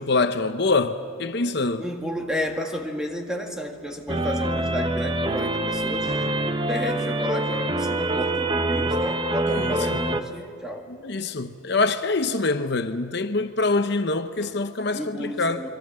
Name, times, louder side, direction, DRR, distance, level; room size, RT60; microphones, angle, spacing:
voice 1, 0.0-1.8 9.5-10.0 10.9-15.7, left 3 dB, 55° left, 0.8 m, -25 dB
voice 2, 1.8-6.3 6.7-10.9 14.9-15.7, equal, 5° right, 2.1 m, -32 dB
sound 1, 4.1-10.2, right 1 dB, 25° right, 0.9 m, -25 dB
26.5 x 23.5 x 7.6 m
head